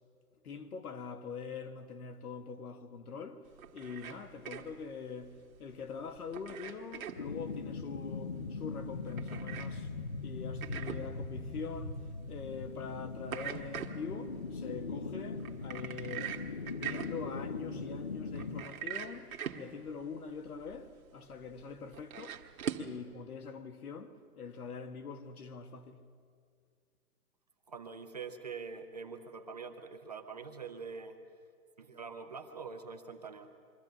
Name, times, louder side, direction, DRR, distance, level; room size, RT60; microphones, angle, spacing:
voice 1, 0.4-3.5 3.7-9.9 10.2-12.0 12.3-16.4 16.7-22.4 22.8-26.0, left 5 dB, 70° left, 1.6 m, -44 dB
sound 1, 3.5-23.0, right 9 dB, 60° right, 1.6 m, -44 dB
sound 2, 7.2-18.6, left 4 dB, 30° left, 0.5 m, -40 dB
voice 2, 27.7-31.2 31.8-33.5, right 5 dB, 25° right, 0.6 m, -44 dB
23.5 x 13.5 x 8.9 m
hypercardioid pair, 170°, 46 cm